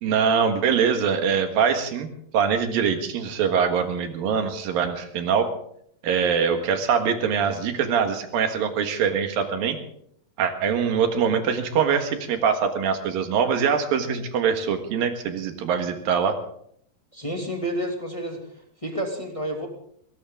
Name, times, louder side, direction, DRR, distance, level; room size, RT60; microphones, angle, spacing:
voice 1, 0.0-2.1 2.3-5.5 6.0-9.8 10.4-16.4, right 7 dB, 80° right, 6 dB, 3.4 m, -23 dB
voice 2, 17.1-18.4 18.8-19.7, right 1 dB, 10° left, 1 dB, 1.7 m, -29 dB
20.5 x 17.5 x 3.7 m, 0.67 s
omnidirectional pair, 4.1 m